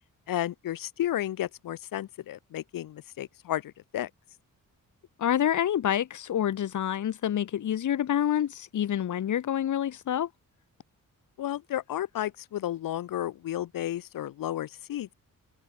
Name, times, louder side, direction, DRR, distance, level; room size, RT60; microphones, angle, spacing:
voice 1, 0.3-4.1 11.4-15.1, left 12 dB, 85° left, 1.2 m, -32 dB
voice 2, 5.2-10.3, left 10 dB, 65° left, 1.1 m, -27 dB
cardioid pair, 105°, 33 cm